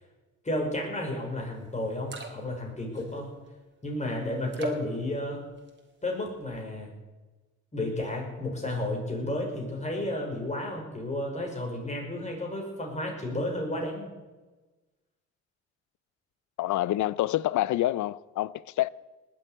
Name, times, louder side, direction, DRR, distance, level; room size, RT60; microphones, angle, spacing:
voice 1, 0.4-3.3 3.8-5.4 6.0-6.9 7.7-14.1, left 1 dB, 25° left, 5.7 m, -32 dB
sound 1, 1.5-1.6 1.8-2.6 2.9-3.5 4.5-5.0 5.5-6.0 6.3-6.6, right 4 dB, 35° right, 3.4 m, -39 dB
voice 2, 16.6-18.9, left 15 dB, 75° left, 0.6 m, -27 dB
19.5 x 7.8 x 9.0 m
cardioid pair, 90°, 30 cm